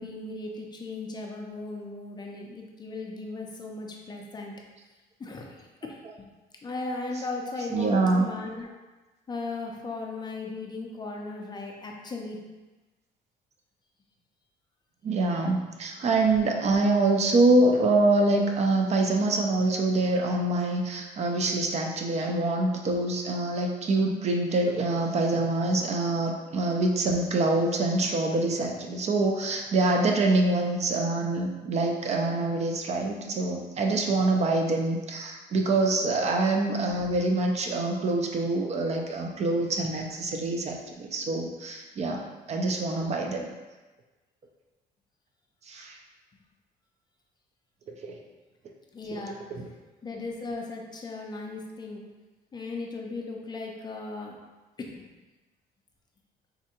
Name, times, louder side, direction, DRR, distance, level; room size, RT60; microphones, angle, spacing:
voice 1, 0.0-4.5 5.2-6.3 6.6-8.7 9.3-12.4 48.9-49.4 50.0-52.0 52.5-54.4 54.8-55.0, left 3 dB, 25° left, 0 dB, 0.4 m, -37 dB
voice 2, 7.7-8.3 15.0-42.2 42.5-43.5 45.7-46.0 48.0-48.2, right 2 dB, 40° right, 1 dB, 0.4 m, -25 dB
3.6 x 2.1 x 2.8 m, 1.2 s
cardioid pair, 125°, 17 cm